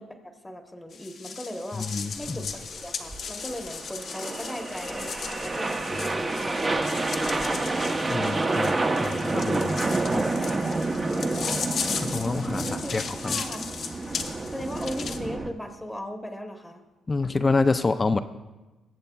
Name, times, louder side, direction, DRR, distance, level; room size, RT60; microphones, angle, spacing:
voice 1, 0.0-1.9 2.2-7.6 12.6-13.7 14.5-16.8, equal, 10° left, 4 dB, 1.0 m, -38 dB
sound 1, 0.9-15.2, left 5 dB, 60° left, 0.8 m, -37 dB
voice 2, 1.7-2.4 5.9-6.2 8.1-10.3 12.0-13.4 17.1-18.2, left 3 dB, 25° left, 10 dB, 0.4 m, -28 dB
sound 2, 2.2-15.5, right 2 dB, 25° right, 0.7 m, -29 dB
21.5 x 7.8 x 2.3 m, 1.1 s
cardioid pair, 90°, 0 cm